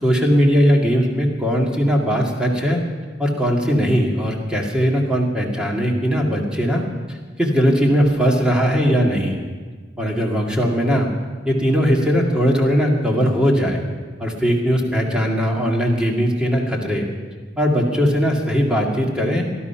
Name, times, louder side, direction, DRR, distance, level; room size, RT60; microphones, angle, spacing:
voice 1, 0.0-2.8 3.2-9.4 10.0-11.1 11.5-13.8 14.2-17.1 17.6-19.5, equal, 5° right, -1 dB, 2.1 m, -19 dB
19.0 x 12.5 x 5.8 m, 1.4 s
head